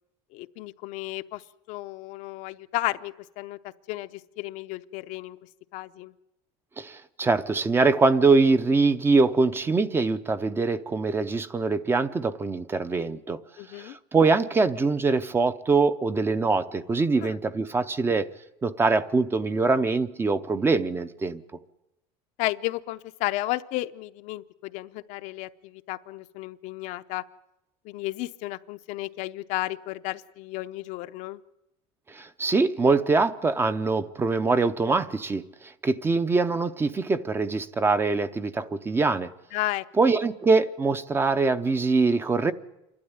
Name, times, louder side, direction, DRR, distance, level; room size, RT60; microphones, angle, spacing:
voice 1, 0.3-1.4 1.7-5.4 5.7-6.1 13.6-14.0 17.2-17.3 22.4-27.2 27.8-31.4 39.5-39.8, left 18 dB, 65° left, 0.7 m, -33 dB
voice 2, 6.8-13.4 13.7-18.3 18.6-21.4 32.1-39.3 40.0-42.5, right 3 dB, 15° right, 0.7 m, -23 dB
27.5 x 12.5 x 9.6 m
cardioid pair, 145°, 14 cm